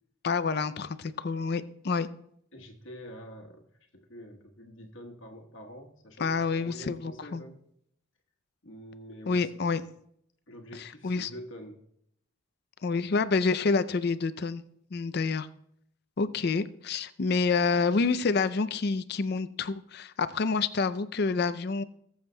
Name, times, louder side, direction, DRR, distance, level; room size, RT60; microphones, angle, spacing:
voice 1, 0.2-2.1 6.2-7.4 9.3-9.8 10.8-11.3 12.8-14.6 14.9-15.5 16.2-21.8, left 4 dB, 50° left, 14 dB, 0.4 m, -28 dB
voice 2, 2.5-3.7 3.9-7.6 8.6-9.5 10.5-11.8, equal, 65° left, 2 dB, 1.2 m, -46 dB
21.0 x 7.1 x 2.2 m, 0.72 s
head